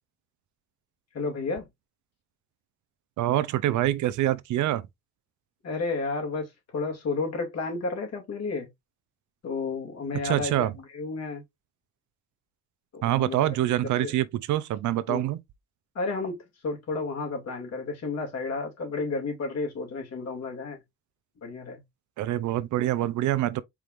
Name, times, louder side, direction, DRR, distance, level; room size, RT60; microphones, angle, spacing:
voice 1, 1.1-1.7 5.6-8.7 9.4-11.4 12.9-13.5 14.0-14.1 15.1-15.3 15.9-20.8 21.4-21.8, left 3 dB, 60° left, 2.3 m, -32 dB
voice 2, 3.2-4.8 10.2-10.7 13.0-15.4 22.2-23.6, right 13 dB, 75° right, 0.6 m, -25 dB
4.7 x 3.4 x 2.5 m
cardioid pair, 90°, 30 cm